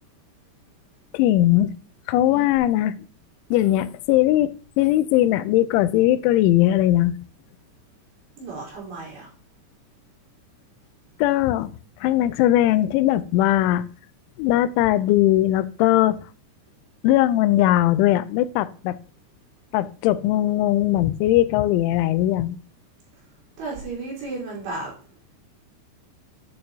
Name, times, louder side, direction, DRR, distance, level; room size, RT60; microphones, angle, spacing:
voice 1, 1.1-1.7 2.1-3.0 3.5-7.2 11.2-11.7 12.0-13.9 14.4-16.2 17.0-19.0 19.7-22.6, left 14 dB, 90° left, 3.0 m, -19 dB
voice 2, 8.4-9.3 23.6-24.9, right 3 dB, 65° right, 6.2 m, -34 dB
11.5 x 6.5 x 2.8 m
omnidirectional pair, 5.3 m